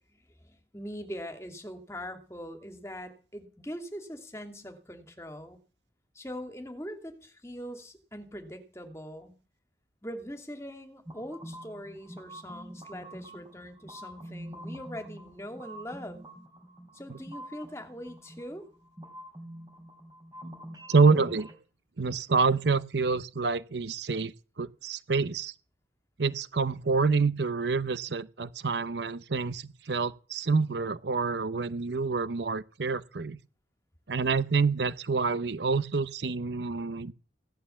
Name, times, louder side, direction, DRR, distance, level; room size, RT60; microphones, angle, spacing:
voice 1, 0.1-5.6 6.1-9.3 10.0-16.2 16.9-18.7, equal, 15° left, 2.7 m, -42 dB
sound 1, 11.0-21.6, equal, 20° right, 3.9 m, -46 dB
voice 2, 20.9-21.5 22.0-25.5 26.2-33.4 34.1-37.1, right 4 dB, 75° right, 0.8 m, -27 dB
16.5 x 11.5 x 7.1 m
head